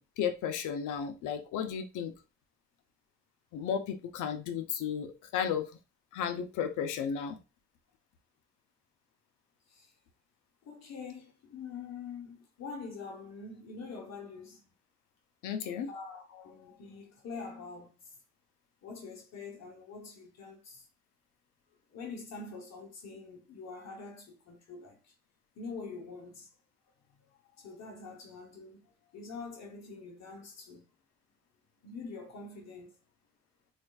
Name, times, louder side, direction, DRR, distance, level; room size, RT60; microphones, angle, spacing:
voice 1, 0.0-2.1 3.5-5.7 6.1-7.4 15.4-15.9, left 8 dB, 85° left, 0.6 m, -34 dB
voice 2, 10.6-14.6 15.6-18.1 18.8-20.9 21.9-25.1 25.6-26.5 27.1-30.8 31.8-32.9, left 4 dB, 60° left, 0.9 m, -45 dB
4.2 x 2.4 x 2.3 m
cardioid pair, 90°, 30 cm